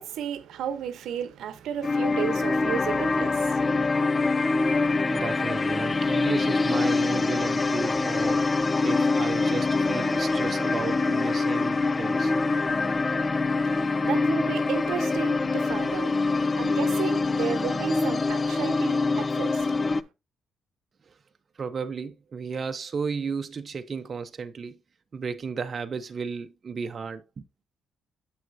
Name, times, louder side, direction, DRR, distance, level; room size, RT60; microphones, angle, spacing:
voice 1, 0.0-3.9 13.6-20.1, right 9 dB, 80° right, 0.8 m, -33 dB
sound 1, 1.8-20.0, left 3 dB, 25° left, 0.3 m, -25 dB
voice 2, 5.1-12.3 21.1-21.2 21.5-24.8 25.1-27.5, right 5 dB, 40° right, 0.5 m, -34 dB
7.7 x 6.3 x 2.6 m
cardioid pair, 90°, 0 cm